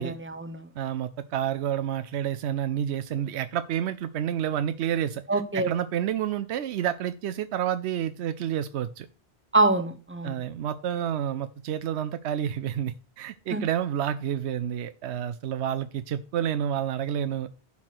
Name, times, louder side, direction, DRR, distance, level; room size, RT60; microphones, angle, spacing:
voice 1, 0.0-0.7 5.3-5.7 9.5-10.4 13.5-13.6, right 2 dB, 10° right, 8 dB, 0.9 m, -25 dB
voice 2, 0.8-9.1 10.2-17.5, right 10 dB, 85° right, 12 dB, 0.9 m, -29 dB
10.5 x 4.4 x 5.9 m, 0.35 s
omnidirectional pair, 1.1 m